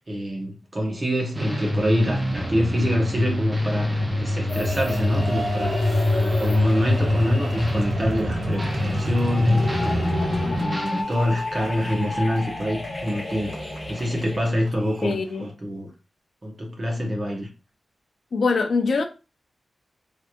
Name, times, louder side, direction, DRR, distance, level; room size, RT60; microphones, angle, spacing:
voice 1, 0.1-10.1 10.6-13.5 13.9-15.9 16.4-17.5, equal, 30° right, 1.1 m, -26 dB
sound 1, 1.3-11.0, left 1 dB, 10° right, 0.6 m, -26 dB
sound 2, 4.4-15.5, right 1 dB, 65° right, 1.3 m, -40 dB
sound 3, 4.5-14.4, left 1 dB, 30° left, 0.8 m, -29 dB
voice 2, 15.0-15.4 18.3-19.0, left 4 dB, 65° left, 0.4 m, -23 dB
3.2 x 2.9 x 2.5 m
wide cardioid pair, 145°, 0 cm